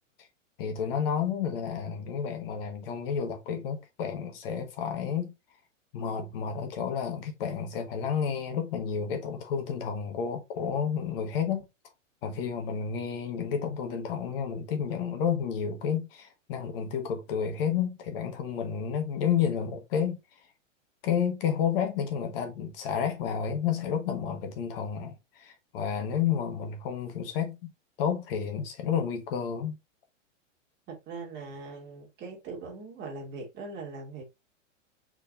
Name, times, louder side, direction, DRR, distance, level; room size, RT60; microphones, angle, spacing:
voice 1, 0.6-5.3 5.9-11.7 12.2-20.2 21.0-27.6 28.0-29.7, left 7 dB, 45° left, 1.4 m, -31 dB
voice 2, 30.9-34.2, right 3 dB, 25° right, 2.2 m, -41 dB
4.9 x 4.3 x 2.5 m
hypercardioid pair, 145°, 38 cm